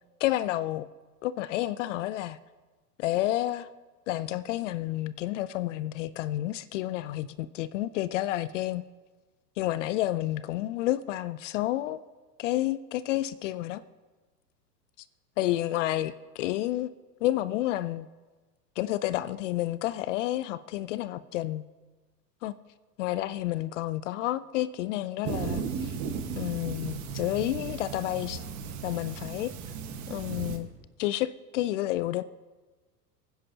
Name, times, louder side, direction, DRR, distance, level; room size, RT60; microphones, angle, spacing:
voice 1, 0.2-0.9 1.2-2.4 3.0-3.7 4.1-8.8 9.6-12.0 12.4-13.8 15.4-16.9 17.2-18.1 18.8-21.6 22.4-22.5 23.0-25.9 26.4-28.4 28.8-29.5 30.1-30.7 31.0-32.2, left 15 dB, 50° left, 0.5 m, -30 dB
sound 1, 25.3-30.6, right 6 dB, 35° right, 1.5 m, -35 dB
22.5 x 10.0 x 2.8 m
hypercardioid pair, 95°, 48 cm